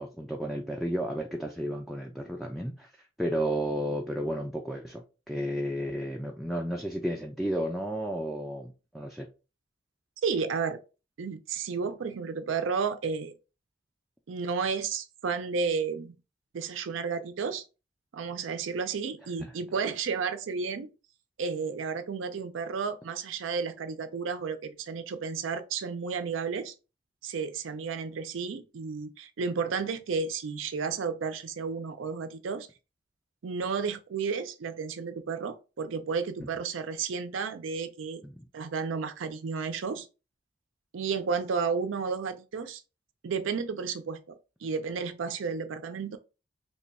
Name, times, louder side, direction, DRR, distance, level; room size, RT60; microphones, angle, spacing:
voice 1, 0.0-2.9 3.2-9.3 19.4-19.5 36.4-36.5 38.2-38.4, equal, ahead, 0.3 m, -32 dB
voice 2, 10.2-10.8 11.2-13.3 14.3-16.1 16.5-17.6 18.1-20.9 21.4-26.7 27.2-32.7 33.4-38.2 38.5-40.1 40.9-42.8 43.2-46.2, right 5 dB, 80° right, 0.4 m, -32 dB
3.0 x 2.2 x 4.0 m
head